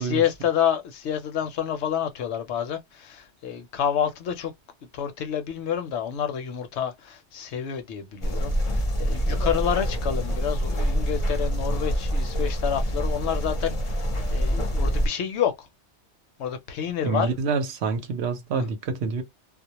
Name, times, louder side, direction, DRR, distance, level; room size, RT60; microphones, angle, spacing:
voice 1, 0.0-4.5 4.9-14.0 14.3-15.7 16.4-17.3 18.5-18.6, left 9 dB, 75° left, 0.8 m, -28 dB
sound 1, 8.2-15.1, equal, 35° left, 0.6 m, -26 dB
voice 2, 17.0-19.2, right 5 dB, 70° right, 0.8 m, -27 dB
2.2 x 2.0 x 2.8 m
omnidirectional pair, 1.2 m